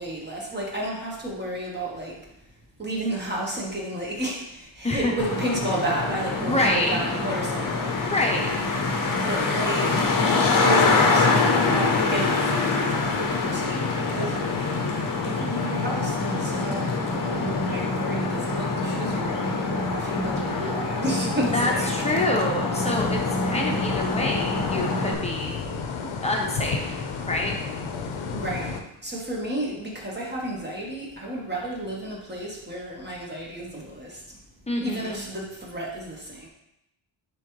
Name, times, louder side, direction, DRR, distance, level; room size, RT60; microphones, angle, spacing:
voice 1, 0.0-2.2 2.8-7.9 9.2-10.0 10.5-14.5 15.2-16.9 17.2-21.9 28.3-34.2 34.8-36.5, right 1 dB, 20° right, -3 dB, 1.2 m, -32 dB
Traffic noise roadway noise, 5.2-25.1, left 3 dB, 40° left, 0.8 m, -25 dB
sound 1, 5.7-10.6, right 2 dB, 45° right, 1.4 m, -40 dB
voice 2, 6.5-7.0 8.1-9.0 20.5-20.8 21.4-25.6 26.2-27.5 34.7-35.2, left 1 dB, 15° left, 0 dB, 0.9 m, -27 dB
sound 2, 22.8-28.8, left 5 dB, 75° left, 0.8 m, -32 dB
9.7 x 3.5 x 3.2 m, 0.84 s
wide cardioid pair, 165°, 49 cm